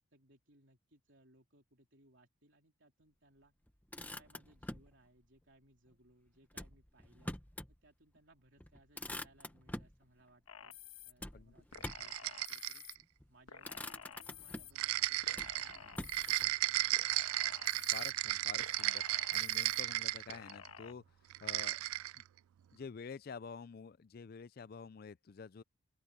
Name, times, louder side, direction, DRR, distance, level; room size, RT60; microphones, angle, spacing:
voice 1, 0.0-3.5 3.9-7.4 7.7-10.8 11.0-12.9 13.3-17.2, right 1 dB, 55° right, 3.5 m, -67 dB
Motor vehicle (road), 3.7-4.9 6.5-7.8 8.2-8.3 8.6-10.0 11.2-12.2 13.0-13.3 13.6-14.8 15.3-16.5, left 1 dB, 10° left, 1.0 m, -46 dB
sound 1, 10.5-11.1 11.7-13.0 13.5-14.7 15.2-16.4 16.9-18.1 18.6-19.8 20.3-20.9, left 8 dB, 80° left, 1.4 m, -52 dB
sound 2, 11.7-13.0 14.7-20.7 21.3-22.2, right 16 dB, 80° right, 0.3 m, -35 dB
voice 2, 17.9-21.0 21.4-21.8 22.1-22.2 22.7-25.6, left 5 dB, 45° left, 0.4 m, -49 dB
open air
head